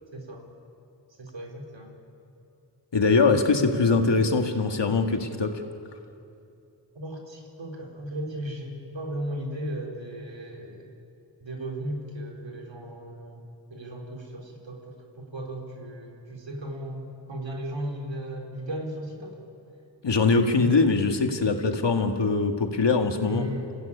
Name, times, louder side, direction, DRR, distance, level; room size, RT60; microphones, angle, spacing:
voice 1, 0.1-0.4 1.2-1.9 6.9-10.9 11.4-13.4 13.7-19.4 23.2-23.8, right 1 dB, 85° right, 0 dB, 4.1 m, -36 dB
voice 2, 2.9-5.6 20.0-23.5, left 4 dB, 70° left, 5 dB, 2.0 m, -22 dB
26.5 x 16.0 x 9.9 m, 2.7 s
cardioid pair, 45°, 44 cm